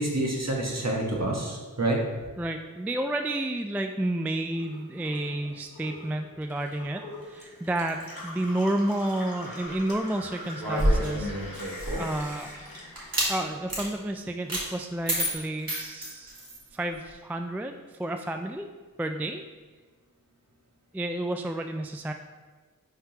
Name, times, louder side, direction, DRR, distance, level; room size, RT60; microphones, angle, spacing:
voice 1, 0.0-2.0, right 1 dB, 50° right, -1 dB, 1.3 m, -27 dB
voice 2, 2.4-12.5 13.3-16.4 16.7-18.7 19.0-19.4 20.9-22.1, right 1 dB, 5° right, 5 dB, 0.3 m, -31 dB
Gurgling / Water tap faucet / Sink (filling or washing), 4.5-14.0 14.3-15.2, left 1 dB, 75° left, 1.6 m, -44 dB
sound 1, 10.6-12.2 12.9-13.3 13.7-13.9 14.5-14.6 15.1-16.6, equal, 85° right, 1.7 m, -28 dB
10.0 x 3.6 x 2.9 m, 1.4 s
wide cardioid pair, 45°, 35 cm